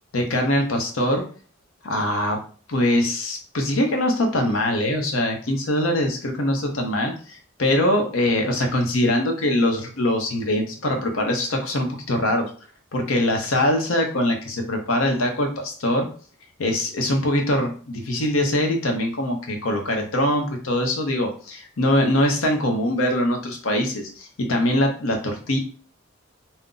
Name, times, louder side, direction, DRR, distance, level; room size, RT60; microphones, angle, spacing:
voice 1, 0.1-1.2 1.8-2.4 2.7-12.5 12.9-16.1 16.6-25.6, left 1 dB, 90° left, 3 dB, 0.7 m, -23 dB
2.5 x 2.0 x 3.7 m, 0.40 s
head